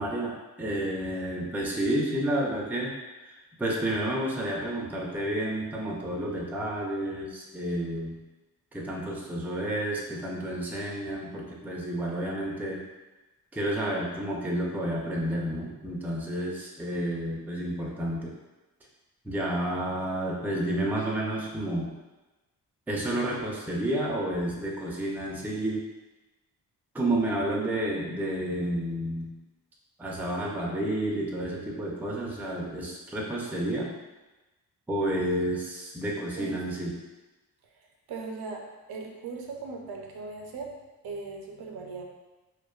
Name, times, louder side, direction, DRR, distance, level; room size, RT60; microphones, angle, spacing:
voice 1, 0.0-8.2 8.7-12.8 13.5-18.3 19.2-21.9 22.9-25.8 26.9-29.3 30.0-33.9 34.9-36.9, right 1 dB, 5° right, -3 dB, 0.3 m, -30 dB
voice 2, 37.7-40.7 41.0-42.0, right 4 dB, 85° right, 1 dB, 0.5 m, -39 dB
2.5 x 2.2 x 2.3 m, 1.1 s
cardioid pair, 95°, 37 cm